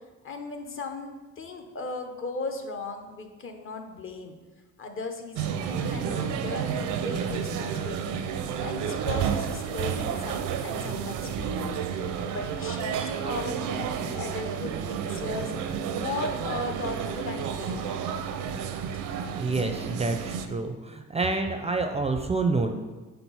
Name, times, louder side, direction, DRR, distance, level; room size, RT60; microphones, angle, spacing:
voice 1, 0.2-4.3 4.8-8.2 8.6-11.8 12.2-15.5 16.0-18.0, left 3 dB, 45° left, 5 dB, 0.8 m, -37 dB
sound 1, 5.4-20.5, right 7 dB, 80° right, 0.6 m, -31 dB
voice 2, 19.4-22.8, right 3 dB, 20° right, 6 dB, 0.4 m, -28 dB
4.5 x 3.8 x 5.5 m, 1.3 s
cardioid pair, 90°, 30 cm